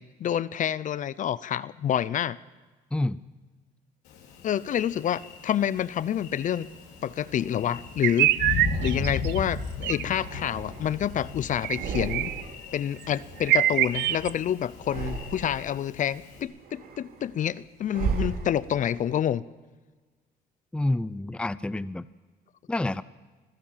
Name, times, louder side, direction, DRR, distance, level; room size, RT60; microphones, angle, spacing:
voice 1, 0.2-2.4 4.4-6.7 7.0-12.3 12.7-19.4, left 10 dB, 50° left, 18 dB, 0.7 m, -28 dB
voice 2, 2.9-3.2 20.7-22.1 22.7-23.0, left 2 dB, 5° left, 16 dB, 0.6 m, -28 dB
Thunder, 4.1-16.4, left 4 dB, 90° left, 5.7 m, -37 dB
sound 1, 6.7-7.9 8.6-9.5 10.0-11.2 11.6-12.7 12.9-14.3 14.7-15.8 16.2-19.0, right 5 dB, 60° right, 3.3 m, -36 dB
sound 2, 8.0-9.4 9.8-10.0 11.6-12.4 13.0-13.1 13.4-14.3, right 15 dB, 80° right, 0.7 m, -25 dB
26.5 x 16.0 x 7.5 m, 1.4 s
cardioid pair, 110°, 17 cm